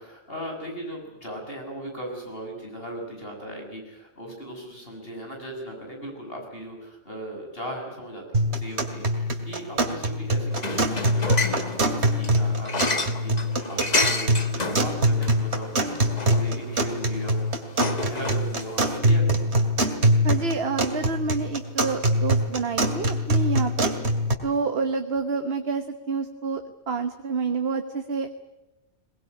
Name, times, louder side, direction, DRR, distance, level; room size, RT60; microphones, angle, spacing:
voice 1, 0.0-19.5, equal, 60° left, 1 dB, 7.4 m, -38 dB
sound 1, 8.3-24.3, right 1 dB, 80° right, 2.9 m, -24 dB
sound 2, 10.5-19.0, left 3 dB, 40° left, 1.7 m, -30 dB
voice 2, 20.2-23.9 24.4-28.3, right 4 dB, 65° right, 7 dB, 1.4 m, -28 dB
22.0 x 20.5 x 9.8 m, 0.98 s
omnidirectional pair, 1.1 m